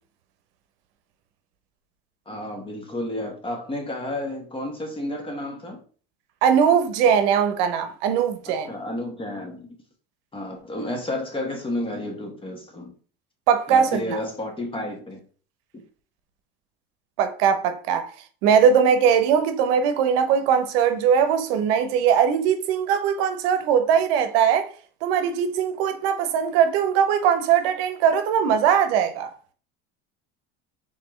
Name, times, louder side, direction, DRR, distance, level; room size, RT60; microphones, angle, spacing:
voice 1, 2.3-5.8 8.4-9.7 10.3-12.9 13.7-15.2, left 1 dB, 20° left, 1.3 m, -31 dB
voice 2, 6.4-8.7 13.5-14.2 17.2-18.1 18.4-24.7 25.0-29.3, right 7 dB, 80° right, 0.8 m, -20 dB
4.3 x 3.7 x 3.1 m
supercardioid pair, 115°, 29 cm